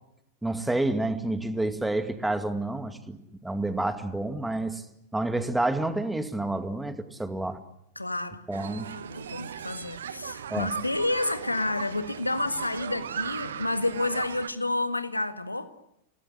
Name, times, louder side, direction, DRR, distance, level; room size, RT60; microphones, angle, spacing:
voice 1, 0.4-3.2 3.4-4.8 5.1-7.6 8.5-8.9 10.5-10.7, right 2 dB, 5° right, 2.2 m, -29 dB
voice 2, 7.9-8.4 8.8-15.7, left 2 dB, 85° left, 1.7 m, -30 dB
sound 1, 8.5-14.5, right 8 dB, 65° right, 1.3 m, -37 dB
29.5 x 19.0 x 10.0 m
figure-of-eight pair, 90°, 0 cm